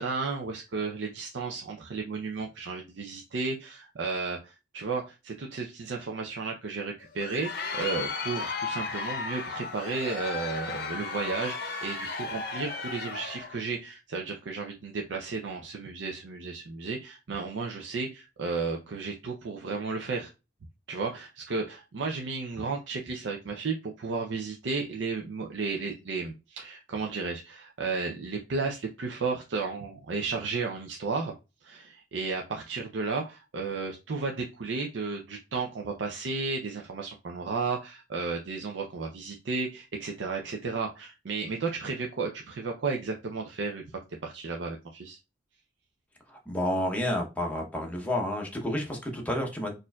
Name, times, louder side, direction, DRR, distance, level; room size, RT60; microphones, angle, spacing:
voice 1, 0.0-20.3 20.9-31.4 31.6-43.8 44.2-45.2, right 4 dB, 75° right, 0.5 m, -33 dB
Crowd, 7.0-13.6, left 4 dB, 55° left, 0.6 m, -35 dB
voice 2, 46.3-49.7, left 1 dB, 10° left, 0.8 m, -30 dB
4.2 x 2.5 x 2.2 m
head